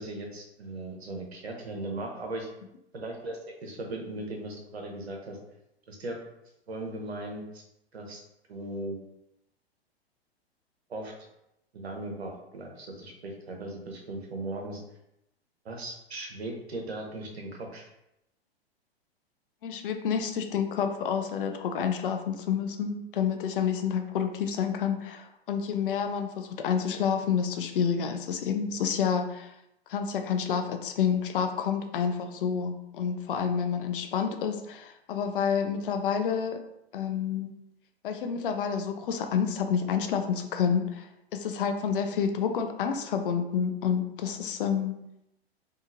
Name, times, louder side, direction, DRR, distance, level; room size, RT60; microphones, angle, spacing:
voice 1, 0.0-2.5 2.9-5.4 5.9-6.2 6.7-7.6 7.9-8.2 8.5-9.0 10.9-11.1 11.7-14.8 15.6-17.9, right 2 dB, 80° right, 1 dB, 0.8 m, -38 dB
voice 2, 19.6-29.5 29.9-36.6 36.9-37.5 38.0-45.0, left 7 dB, 60° left, 6 dB, 0.4 m, -29 dB
2.8 x 2.4 x 2.6 m, 0.84 s
figure-of-eight pair, 105°, 31 cm